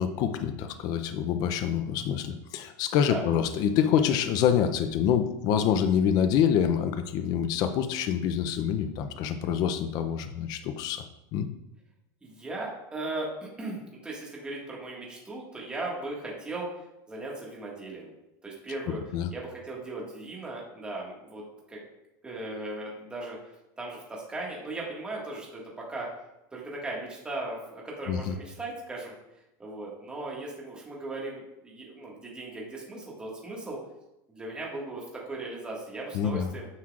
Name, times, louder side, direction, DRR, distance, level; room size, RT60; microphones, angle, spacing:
voice 1, 0.0-11.0 11.3-11.5 19.1-19.3 28.1-28.3 36.1-36.5, left 8 dB, 40° left, 8 dB, 0.5 m, -26 dB
voice 2, 12.2-16.7 17.1-18.1 18.4-19.0 19.3-21.8 22.2-23.4 23.8-25.6 25.9-26.1 26.5-29.1 29.6-33.8 34.3-36.7, right 2 dB, 10° right, -3 dB, 1.7 m, -37 dB
9.6 x 6.2 x 2.4 m, 0.90 s
supercardioid pair, 155°, 10 cm